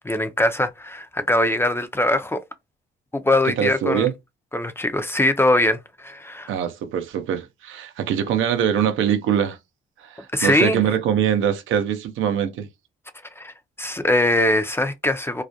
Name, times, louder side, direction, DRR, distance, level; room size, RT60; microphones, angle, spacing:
voice 1, 0.0-2.4 3.1-4.1 4.5-6.5 10.3-10.8 13.4-15.4, left 1 dB, 10° left, 0.4 m, -21 dB
voice 2, 3.6-4.1 6.5-9.6 10.0-12.7, right 9 dB, 80° right, 0.6 m, -23 dB
2.4 x 2.1 x 2.6 m
cardioid pair, 90°, 20 cm